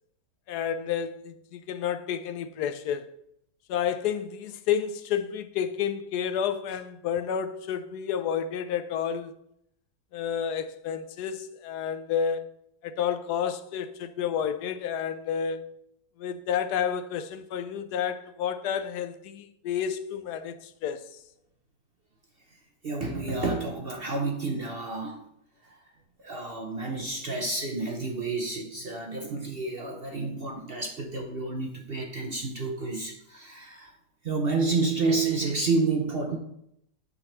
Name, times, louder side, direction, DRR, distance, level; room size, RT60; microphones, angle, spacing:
voice 1, 0.5-3.1 3.7-9.3 10.1-12.5 12.8-15.6 16.2-21.0, left 8 dB, 75° left, 1.1 m, -30 dB
voice 2, 22.8-25.3 25.6-25.8 26.2-33.9 34.2-36.4, right 3 dB, 45° right, 0.8 m, -30 dB
9.2 x 4.0 x 5.7 m
omnidirectional pair, 1.8 m